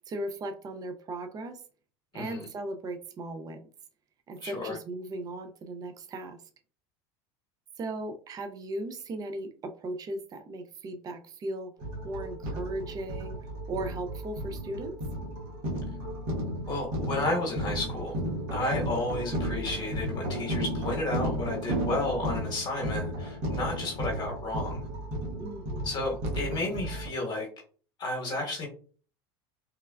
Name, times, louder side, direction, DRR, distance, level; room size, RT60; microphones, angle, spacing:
voice 1, 0.0-1.6 2.1-3.6 4.3-6.4 7.8-11.7 12.0-13.4 13.7-14.9 25.4-25.9, right 2 dB, 25° right, 7 dB, 0.5 m, -37 dB
voice 2, 2.1-2.5 4.4-4.8 16.7-18.2 18.5-24.8 25.8-27.5 28.0-28.7, left 2 dB, 30° left, -1 dB, 1.1 m, -32 dB
sound 1, 11.8-27.1, equal, 70° right, 1.1 m, -34 dB
3.3 x 2.1 x 2.2 m, 0.41 s
hypercardioid pair, 100°, 14 cm